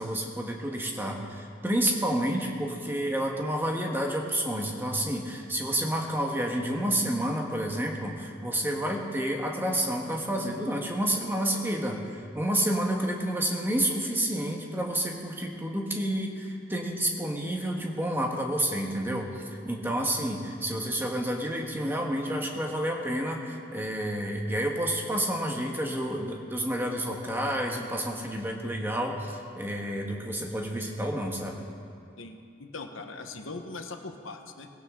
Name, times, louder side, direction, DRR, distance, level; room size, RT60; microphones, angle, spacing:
voice 1, 0.0-31.6, right 1 dB, 10° right, 0 dB, 1.5 m, -29 dB
voice 2, 32.2-34.7, left 3 dB, 80° left, 5 dB, 1.2 m, -40 dB
19.0 x 16.5 x 3.8 m, 2.4 s
head